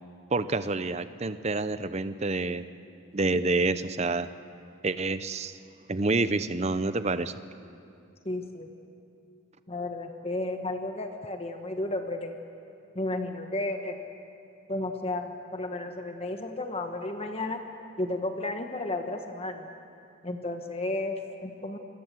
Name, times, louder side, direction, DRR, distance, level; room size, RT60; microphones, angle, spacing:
voice 1, 0.3-2.7 3.1-4.3 4.8-5.6 5.9-7.3, right 3 dB, 30° right, 13 dB, 0.6 m, -28 dB
voice 2, 8.2-8.7 9.7-12.3 12.9-14.0 14.7-17.6 18.0-19.7 20.2-21.8, left 2 dB, 30° left, 5 dB, 1.3 m, -33 dB
26.5 x 22.0 x 7.7 m, 2.5 s
head